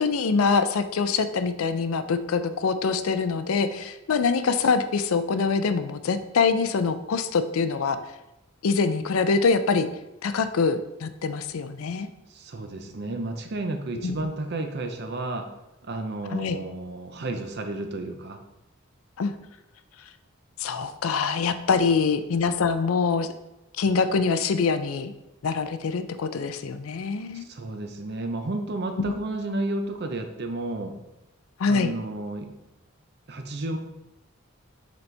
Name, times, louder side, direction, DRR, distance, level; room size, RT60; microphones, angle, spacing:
voice 1, 0.0-8.0 8.6-9.9 10.2-12.1 14.0-14.3 16.3-16.6 19.2-19.3 20.6-23.3 23.8-25.1 25.4-27.5 29.0-29.1 31.6-31.9, left 5 dB, 80° left, 10 dB, 0.4 m, -24 dB
voice 2, 12.3-15.5 15.8-18.4 27.3-31.0 31.7-32.5 33.3-33.8, right 2 dB, 50° right, 6 dB, 0.6 m, -32 dB
6.9 x 4.1 x 3.3 m, 0.93 s
head